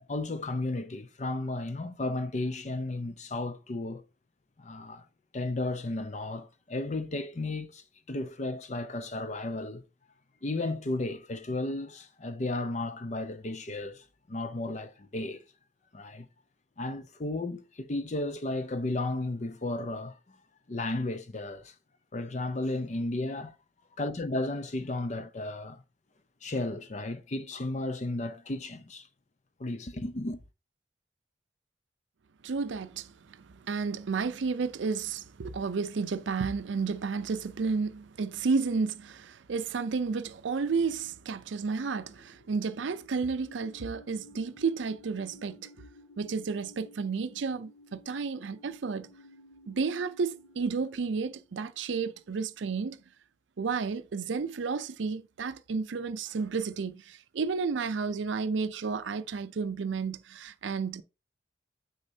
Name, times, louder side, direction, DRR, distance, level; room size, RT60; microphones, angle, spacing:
voice 1, 0.0-4.0 4.6-5.0 5.3-9.8 10.4-15.4 15.9-16.3 16.8-20.2 20.7-21.7 22.1-23.5 24.0-25.8 26.4-29.1 29.6-30.4, left 2 dB, 40° left, 0.5 m, -34 dB
voice 2, 32.4-45.7 46.2-49.1 49.7-53.0 53.6-61.0, right 5 dB, 80° right, 0.5 m, -32 dB
sound 1, 41.7-52.6, left 1 dB, 75° left, 1.8 m, -56 dB
6.5 x 6.3 x 2.7 m
head